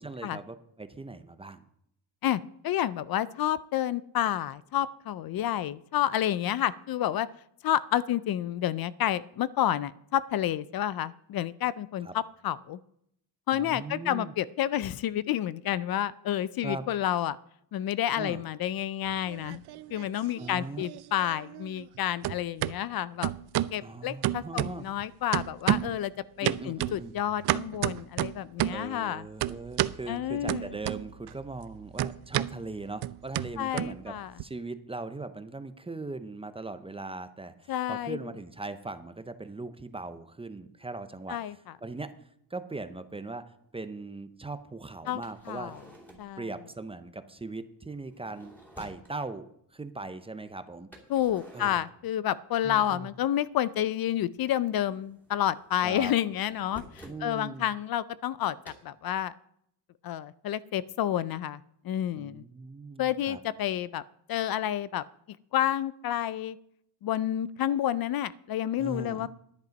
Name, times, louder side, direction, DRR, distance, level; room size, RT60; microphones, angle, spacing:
voice 1, 0.0-1.6 12.0-12.1 13.5-14.3 16.6-16.9 18.2-18.4 20.4-20.9 23.8-24.8 26.4-27.1 28.7-42.1 42.5-43.4 43.7-45.8 46.4-49.5 49.7-50.9 51.5-51.8 52.6-53.1 55.8-56.1 57.1-57.7 62.2-63.4 68.8-69.3, right 3 dB, 15° right, 11 dB, 0.6 m, -39 dB
voice 2, 2.2-7.3 7.6-12.1 12.4-12.8 13.5-17.4 17.7-19.6 19.9-23.3 23.7-26.1 26.4-29.3 30.1-30.7 33.6-34.3 37.7-38.2 41.3-41.5 45.1-45.2 45.5-45.7 46.2-46.4 51.1-59.3 60.0-61.6 61.8-62.4 63.0-64.0 64.3-65.0 65.5-66.6 67.0-69.3, left 11 dB, 60° left, 18 dB, 0.5 m, -29 dB
sound 1, 19.1-20.1 20.4-22.0 22.2-22.7 23.2-23.8 24.2-25.0 25.3-26.0 26.4-28.9 29.4-30.0 30.5-31.3 31.6-34.4, right 14 dB, 65° right, 0.5 m, -31 dB
sound 2, 45.1-46.4 47.9-49.1 50.9-52.6 52.8-53.7 54.0-57.3 58.6-58.8, equal, 5° left, 2.6 m, -52 dB
10.5 x 10.5 x 5.2 m, 0.72 s
cardioid pair, 145°, 42 cm